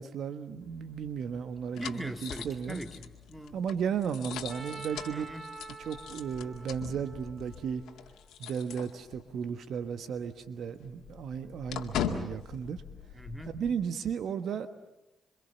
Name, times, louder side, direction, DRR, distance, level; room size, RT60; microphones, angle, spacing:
voice 1, 0.0-2.8 3.5-5.3 5.8-7.8 8.4-12.8 13.5-14.7, right 7 dB, 65° right, 10 dB, 1.3 m, -35 dB
sound 1, 0.6-9.5 9.8-9.9 10.2-13.7, left 8 dB, 75° left, 2.0 m, -41 dB
voice 2, 1.8-3.6 5.1-5.5 13.1-13.6, equal, 10° right, 6 dB, 2.5 m, -41 dB
Trumpet, 4.5-8.5, right 4 dB, 35° right, 4.0 m, -47 dB
27.0 x 25.0 x 7.0 m, 0.91 s
hypercardioid pair, 45°, 0 cm